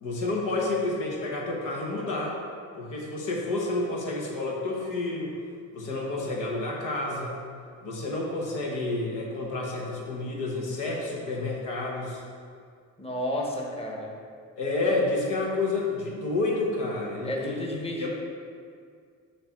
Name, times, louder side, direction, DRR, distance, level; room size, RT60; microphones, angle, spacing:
voice 1, 0.0-2.4 2.8-5.3 5.7-7.4 7.8-12.2 14.6-17.7 18.0-18.1, left 2 dB, 90° left, -2 dB, 1.2 m, -29 dB
voice 2, 13.0-14.1 17.2-18.1, left 1 dB, 20° left, -1 dB, 1.0 m, -32 dB
6.7 x 2.9 x 5.8 m, 2.2 s
cardioid pair, 90°, 30 cm